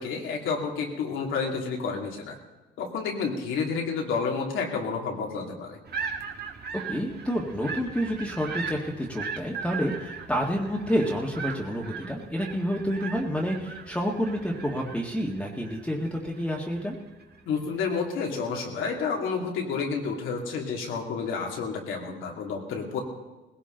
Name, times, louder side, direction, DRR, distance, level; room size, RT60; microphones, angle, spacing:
voice 1, 0.0-2.4 2.8-5.8 17.5-23.0, left 5 dB, 85° left, 0 dB, 2.7 m, -30 dB
sound 1, 5.9-17.4, right 6 dB, 55° right, 1.8 m, -39 dB
voice 2, 6.9-16.9, equal, 5° left, -2 dB, 1.9 m, -29 dB
19.5 x 17.0 x 3.9 m, 1.2 s
cardioid pair, 90°, 20 cm